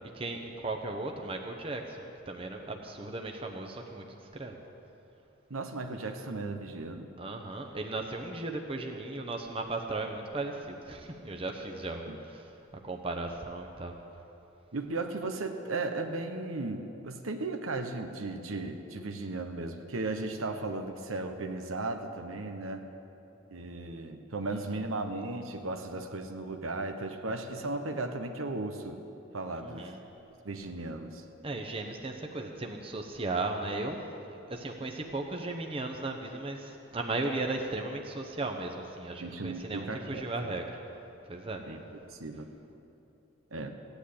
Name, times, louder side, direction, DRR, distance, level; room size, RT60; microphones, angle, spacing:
voice 1, 0.0-4.6 7.2-12.5 12.8-13.9 24.7-24.8 29.6-30.0 31.4-34.0 34.5-40.8 41.2-41.6, right 2 dB, 25° right, 3 dB, 0.9 m, -36 dB
voice 2, 5.5-7.1 12.1-12.2 14.7-22.8 23.5-29.0 29.3-29.9 30.4-31.2 39.2-40.6 41.7-41.8 42.1-42.5 43.5-43.7, right 2 dB, 90° right, 5 dB, 1.1 m, -36 dB
16.0 x 10.0 x 8.5 m, 2.9 s
head